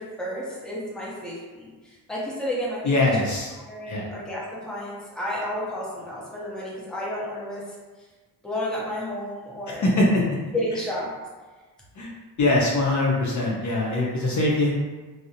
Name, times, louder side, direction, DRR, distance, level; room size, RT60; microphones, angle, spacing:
voice 1, 0.0-3.1 3.7-7.6 8.4-9.9 10.5-11.1, left 1 dB, ahead, -6 dB, 0.6 m, -31 dB
voice 2, 2.8-3.5 3.9-4.1 9.7-10.2 12.0-12.1 12.4-14.7, left 2 dB, 45° left, -3 dB, 0.6 m, -22 dB
2.4 x 2.0 x 2.7 m, 1.3 s
cardioid pair, 85°, 41 cm